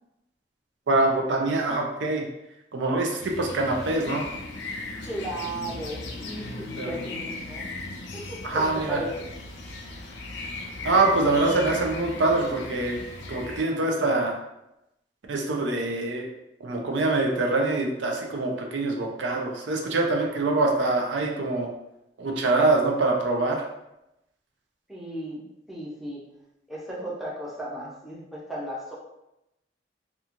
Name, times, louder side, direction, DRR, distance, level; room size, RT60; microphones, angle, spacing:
voice 1, 0.9-2.2 2.7-4.2 6.8-6.9 8.4-9.0 10.8-13.0 13.3-14.4 15.3-16.3 16.6-21.7 22.2-23.6, right 2 dB, 85° right, 1 dB, 0.5 m, -24 dB
sound 1, 3.2-13.6, left 2 dB, 75° left, 0.5 m, -37 dB
voice 2, 5.0-7.7 8.1-9.3 24.9-26.3 26.7-28.9, right 1 dB, ahead, -7 dB, 0.5 m, -35 dB
2.9 x 2.3 x 2.5 m, 0.89 s
head